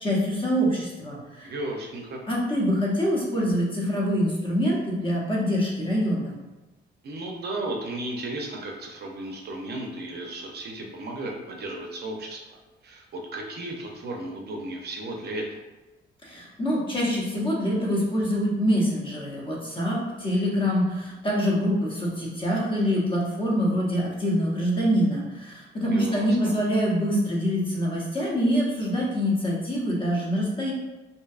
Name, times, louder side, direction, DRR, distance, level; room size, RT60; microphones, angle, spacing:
voice 1, 0.0-1.5 2.3-6.3 16.2-30.7, equal, 25° left, -4 dB, 0.8 m, -25 dB
voice 2, 1.4-2.2 7.0-12.6 12.8-15.6 25.9-26.5, right 1 dB, 55° right, 1 dB, 0.5 m, -34 dB
2.6 x 2.2 x 2.3 m, 1.1 s
cardioid pair, 90°, 20 cm